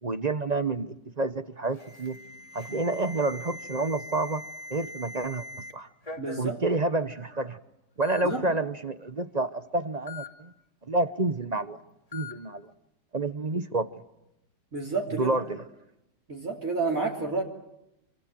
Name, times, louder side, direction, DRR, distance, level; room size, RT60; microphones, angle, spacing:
voice 1, 0.0-2.2 2.5-4.4 4.7-5.5 5.7-5.9 6.4-7.6 8.0-10.5 10.9-11.8 12.1-12.7 13.1-13.9 15.2-15.6, right 2 dB, 30° right, 11 dB, 0.9 m, -29 dB
Alarm, 1.7-5.7 6.0-6.5 7.3-7.4 8.0-8.2 10.1-10.3 12.1-12.3, left 3 dB, 20° left, 2.8 m, -41 dB
voice 2, 6.2-6.6 8.2-8.4 14.7-15.3 16.3-17.4, right 3 dB, 50° right, 2 dB, 3.6 m, -29 dB
27.0 x 25.5 x 7.7 m, 0.88 s
omnidirectional pair, 1.9 m